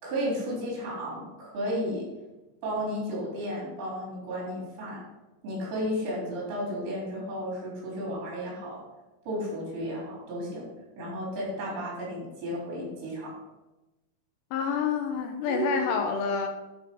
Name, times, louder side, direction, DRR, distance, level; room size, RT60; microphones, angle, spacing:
voice 1, 0.0-2.1 2.6-5.0 5.4-8.8 9.3-10.7 11.0-13.3 15.4-15.9, equal, 70° right, -4 dB, 5.6 m, -33 dB
voice 2, 14.5-16.5, left 6 dB, 75° left, 4 dB, 2.8 m, -28 dB
11.5 x 5.2 x 5.3 m, 1.1 s
omnidirectional pair, 5.2 m